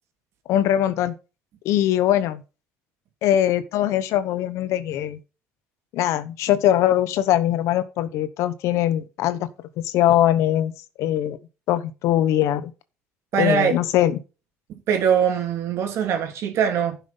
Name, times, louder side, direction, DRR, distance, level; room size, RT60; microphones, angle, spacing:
voice 1, 0.5-1.1 1.6-2.4 3.2-5.2 5.9-9.5 9.8-10.7 11.0-11.4 11.7-12.7 13.4-14.2, left 12 dB, 70° left, 1.0 m, -21 dB
voice 2, 13.3-13.8 14.9-17.0, right 7 dB, 65° right, 2.7 m, -22 dB
11.0 x 5.9 x 5.4 m
supercardioid pair, 80°, 5 cm